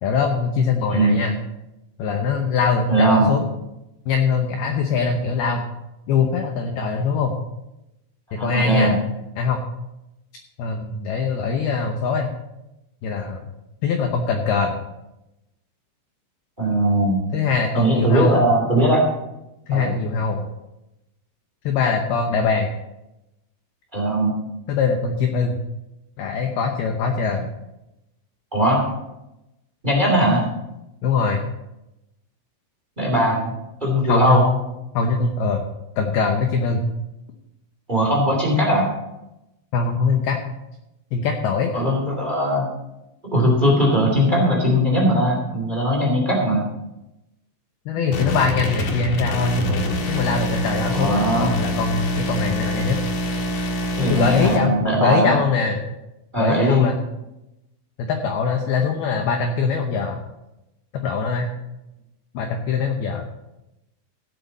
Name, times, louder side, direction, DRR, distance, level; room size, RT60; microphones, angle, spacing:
voice 1, 0.0-1.4 2.0-3.4 4.1-5.6 6.1-7.3 8.3-9.0 9.4-9.6 10.6-12.3 13.0-13.4 13.8-14.8 17.3-18.4 19.7-20.5 21.6-22.7 24.7-25.5 26.2-27.5 31.0-31.4 34.0-34.6 34.9-35.7 36.0-36.8 39.7-40.4 41.1-41.8 47.9-53.0 54.1-55.8 56.4-57.0 58.0-60.2 61.0-61.5 62.3-63.2, left 5 dB, 90° left, 4 dB, 2.2 m, -22 dB
voice 2, 2.9-3.3 8.3-8.9 16.6-17.2 17.7-19.0 19.7-19.9 23.9-24.3 28.5-28.8 29.8-30.4 33.0-33.5 33.8-34.4 37.9-38.9 41.7-42.7 43.3-46.6 50.9-51.5 54.0-55.4 56.3-56.9, right 1 dB, 20° right, -1 dB, 1.2 m, -19 dB
sound 1, 48.1-54.6, equal, 65° left, 2.0 m, -25 dB
16.5 x 8.1 x 4.1 m, 0.92 s
omnidirectional pair, 5.9 m